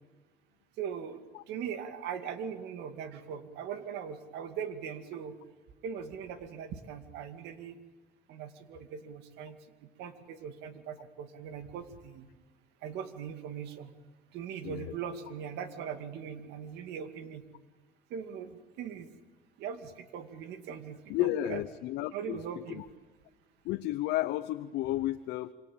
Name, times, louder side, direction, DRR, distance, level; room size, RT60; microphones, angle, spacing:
voice 1, 0.8-5.3 5.8-7.7 8.3-9.6 10.0-12.3 12.8-13.9 14.3-17.4 18.1-18.5 18.8-19.1 19.6-21.6 22.1-22.8, right 7 dB, 85° right, 9 dB, 2.4 m, -40 dB
voice 2, 14.6-14.9 21.1-22.4 22.7-22.8 23.6-25.5, left 15 dB, 85° left, 10 dB, 0.8 m, -32 dB
26.0 x 26.0 x 8.7 m, 1.3 s
cardioid pair, 110°, 17 cm